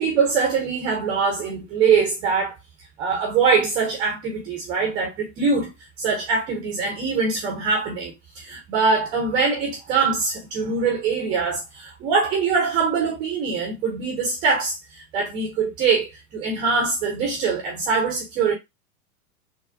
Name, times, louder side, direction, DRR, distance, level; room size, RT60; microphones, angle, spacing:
voice 1, 0.0-2.6 3.0-5.7 6.0-18.5, right 5 dB, 10° right, 0.4 m, -23 dB
4.0 x 2.1 x 2.4 m
figure-of-eight pair, 100°, 45 cm